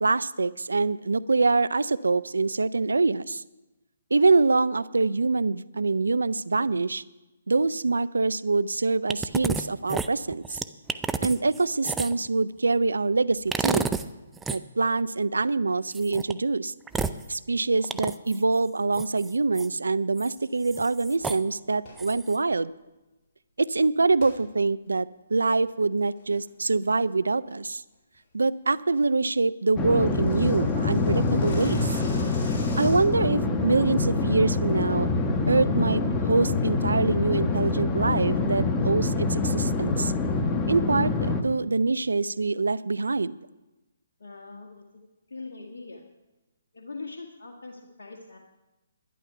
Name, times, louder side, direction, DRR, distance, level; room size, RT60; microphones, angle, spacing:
voice 1, 0.0-3.4 4.1-7.0 7.5-10.6 11.2-13.9 14.5-16.7 17.3-22.7 23.6-27.8 28.3-32.0 32.8-35.1 35.5-40.1 40.7-43.4, right 3 dB, 80° right, 18 dB, 0.5 m, -25 dB
sound 1, 9.1-9.6 9.9-12.3 13.5-14.1 14.4-14.6 15.9-16.3 16.9-17.2 17.8-18.4 18.9-19.7 20.2-20.3 20.6-21.4 22.0-22.4, right 4 dB, 10° right, 0.4 m, -30 dB
sound 2, 21.8-22.1 24.2-24.4 24.9-25.0 25.5-25.8 26.1-26.5 26.8-27.1 27.4-27.5 27.9-28.2 28.5-28.6 29.0-29.1 29.2-29.3 29.6-33.3, left 2 dB, 35° left, 4.0 m, -45 dB
sound 3, 29.8-41.4, left 3 dB, 15° left, 1.1 m, -25 dB
voice 2, 44.2-44.8 45.3-46.0 46.7-48.4, left 3 dB, 65° left, -1 dB, 1.6 m, -41 dB
11.5 x 10.5 x 5.7 m, 1.0 s
figure-of-eight pair, 135°, 0 cm